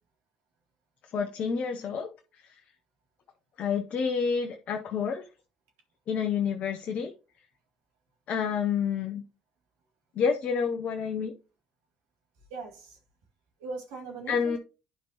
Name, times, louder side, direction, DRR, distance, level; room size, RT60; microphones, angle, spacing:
voice 1, 1.1-2.1 3.6-5.2 6.1-7.1 8.3-9.2 10.2-11.3 14.3-14.6, left 6 dB, 50° left, 0.8 m, -28 dB
voice 2, 12.5-13.0 13.6-14.6, right 3 dB, 70° right, 2.1 m, -39 dB
11.0 x 5.1 x 2.9 m
figure-of-eight pair, 55°, 3 cm